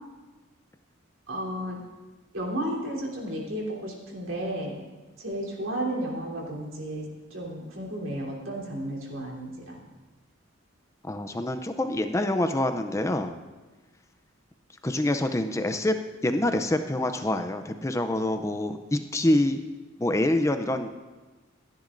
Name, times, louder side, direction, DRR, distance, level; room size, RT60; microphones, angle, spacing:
voice 1, 1.3-1.8 2.3-4.8 5.2-9.8, right 1 dB, 80° right, -3 dB, 3.5 m, -33 dB
voice 2, 11.0-13.4 14.8-15.9 16.2-19.6 20.0-20.9, left 1 dB, 15° left, 7 dB, 0.5 m, -26 dB
28.0 x 10.5 x 2.6 m, 1.2 s
head